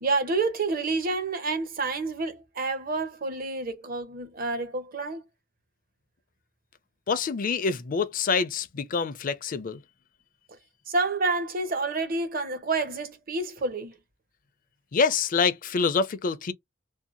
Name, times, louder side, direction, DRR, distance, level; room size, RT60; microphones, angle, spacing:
voice 1, 0.0-5.2 10.9-13.9, right 3 dB, 50° right, 0.7 m, -29 dB
voice 2, 7.1-9.8 14.9-16.5, left 5 dB, 45° left, 0.4 m, -26 dB
2.7 x 2.1 x 2.5 m
head